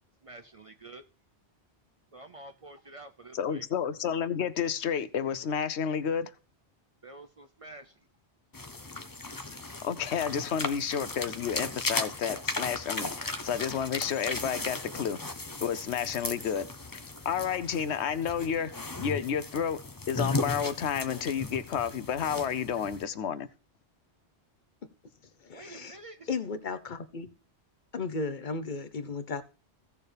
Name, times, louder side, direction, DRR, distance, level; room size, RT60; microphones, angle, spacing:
voice 1, 0.2-1.0 2.1-3.7 7.0-8.1 25.5-26.3, right 2 dB, 40° right, 0.6 m, -48 dB
voice 2, 3.3-6.3 9.8-15.2 15.6-16.7 16.9-19.8 20.1-23.5, left 8 dB, 80° left, 1.0 m, -31 dB
sound 1, 8.5-23.0, left 2 dB, 20° left, 0.7 m, -36 dB
voice 3, 25.4-26.0 26.3-27.3 27.9-29.4, left 4 dB, 50° left, 1.0 m, -35 dB
16.0 x 6.7 x 3.4 m
omnidirectional pair, 1.1 m